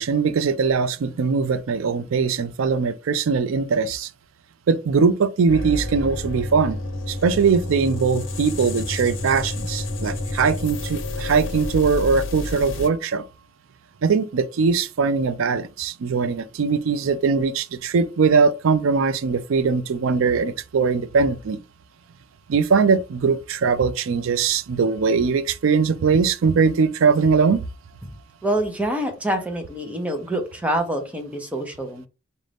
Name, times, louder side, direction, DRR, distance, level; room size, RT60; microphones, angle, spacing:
voice 1, 0.0-4.1 4.7-6.8 7.1-13.3 14.0-21.6 22.5-27.6, right 5 dB, 85° right, 0.4 m, -21 dB
sound 1, 5.5-12.9, left 1 dB, 80° left, 0.8 m, -30 dB
voice 2, 28.4-32.1, right 1 dB, 5° right, 0.8 m, -26 dB
4.0 x 2.6 x 3.4 m
head